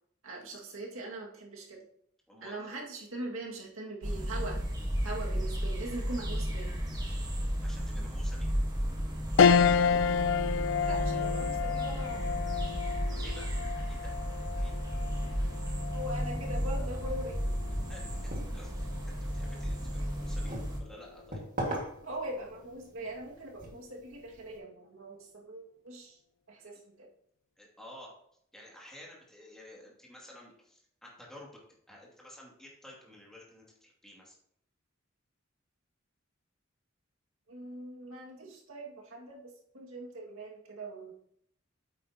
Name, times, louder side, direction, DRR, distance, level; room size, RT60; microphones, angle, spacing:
voice 1, 0.2-1.8 2.4-4.6 5.0-6.8 10.7-12.4 15.9-17.4 21.6-26.2 26.5-27.1 37.5-41.1, right 1 dB, 85° right, -1 dB, 2.1 m, -41 dB
voice 2, 2.3-2.8 7.6-8.5 13.1-14.2 14.6-14.7 17.7-21.4 27.6-28.1 28.5-34.4, left 1 dB, 5° left, -4 dB, 2.5 m, -52 dB
sound 1, 4.0-20.8, equal, 20° right, 1.4 m, -33 dB
sound 2, 9.4-19.0 19.5-19.6 20.9-21.3, left 6 dB, 65° left, 0.4 m, -30 dB
sound 3, 18.1-24.6, right 1 dB, 40° right, 1.9 m, -42 dB
9.0 x 8.3 x 2.9 m, 0.69 s
head